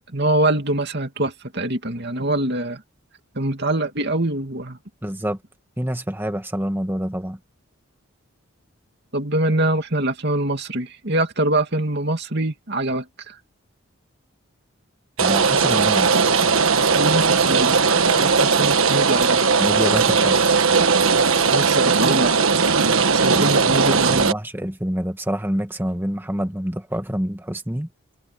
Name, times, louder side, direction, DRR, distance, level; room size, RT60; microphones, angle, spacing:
voice 1, 0.1-2.8 3.4-4.8 9.1-13.3 17.0-17.8 18.2-19.4 21.2-22.4 22.8-24.2, right 1 dB, 50° right, 2.7 m, -24 dB
voice 2, 5.0-5.4 5.8-7.4 15.2-16.1 19.6-20.6 23.4-27.9, equal, 10° right, 1.5 m, -27 dB
Rain, 15.2-24.3, right 5 dB, 75° right, 1.4 m, -18 dB
head